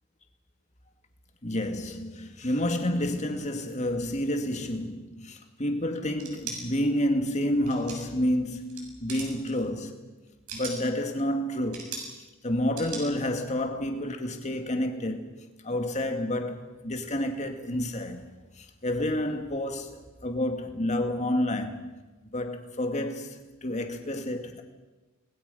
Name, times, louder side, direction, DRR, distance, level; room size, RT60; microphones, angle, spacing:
voice 1, 1.4-10.0 10.5-12.0 12.4-15.3 15.6-18.2 18.6-21.9 22.3-24.6, left 1 dB, 30° left, 2.2 m, -29 dB
sound 1, 6.2-6.6 7.6-8.2 8.5-8.8 9.1-9.5 10.3-10.9 11.7-12.1 12.8-13.0, right 5 dB, 85° right, 7.2 m, -38 dB
29.5 x 21.0 x 5.7 m
head